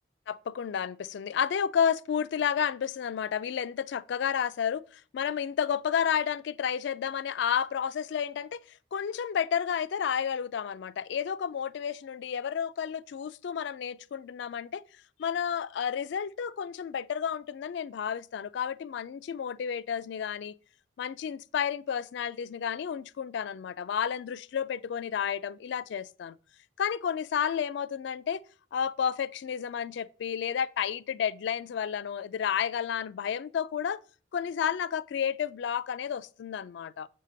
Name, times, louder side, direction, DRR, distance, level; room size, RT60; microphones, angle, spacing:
voice 1, 0.3-8.6 8.9-14.8 15.2-20.5 21.0-26.4 26.8-28.4 28.7-34.0 34.3-37.1, left 8 dB, 60° left, 0.3 m, -31 dB
7.3 x 2.8 x 5.0 m
head